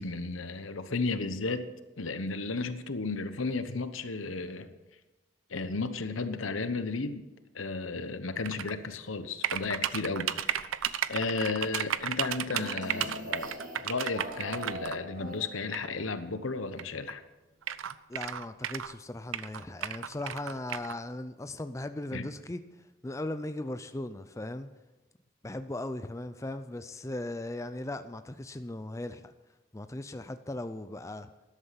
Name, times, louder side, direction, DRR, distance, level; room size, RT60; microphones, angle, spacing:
voice 1, 0.0-1.7 2.0-4.7 5.5-7.3 7.5-10.7 11.1-17.2 22.1-22.3, left 3 dB, 85° left, 11 dB, 1.0 m, -34 dB
sound 1, 8.4-8.7 9.4-15.0 15.7-15.9 16.8-16.9 17.1-17.2 17.6-18.9 19.3-20.9, right 10 dB, 90° right, 0.6 m, -33 dB
sound 2, 12.5-16.0, equal, 40° right, 2.2 m, -43 dB
voice 2, 18.1-22.6 23.0-24.7 25.4-29.3 29.7-31.3, left 1 dB, 15° left, 10 dB, 0.5 m, -38 dB
13.5 x 11.5 x 5.9 m, 1.1 s
head